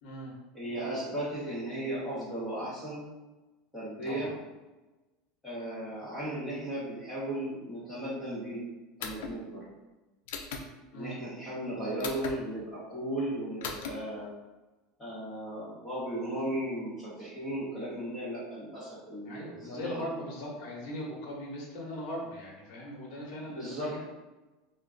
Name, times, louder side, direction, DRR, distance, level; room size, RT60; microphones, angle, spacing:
voice 1, 0.0-0.3 4.0-4.3 10.9-11.2 19.2-24.0, equal, 55° left, -3 dB, 1.0 m, -39 dB
voice 2, 0.5-3.0 3.7-4.3 5.4-8.6 9.0-9.7 10.9-14.3 15.0-20.1 23.5-24.0, right 1 dB, 10° left, -8 dB, 1.0 m, -36 dB
sound 1, 9.0-9.3 10.3-10.6 12.0-12.3 13.6-13.9, left 5 dB, 75° left, 0.4 m, -37 dB
2.2 x 2.2 x 3.6 m, 1.1 s
supercardioid pair, 160°, 0 cm